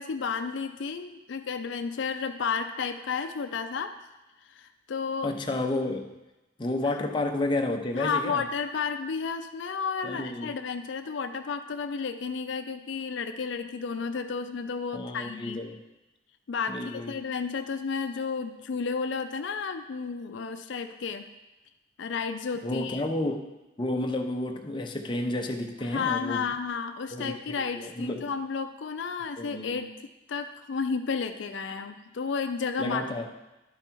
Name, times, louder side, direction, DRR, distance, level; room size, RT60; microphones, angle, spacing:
voice 1, 0.0-3.9 4.5-5.3 6.8-6.9 7.9-15.6 16.5-21.3 22.0-23.0 25.9-29.9 30.3-33.2, left 5 dB, 70° left, 8 dB, 0.4 m, -32 dB
voice 2, 5.2-6.1 6.6-8.4 10.0-10.5 14.9-15.8 16.7-17.1 22.6-23.5 23.8-26.4 27.1-28.3 29.4-29.9 32.8-33.3, left 2 dB, 25° left, 3 dB, 0.6 m, -31 dB
11.0 x 4.7 x 4.5 m, 1.0 s
head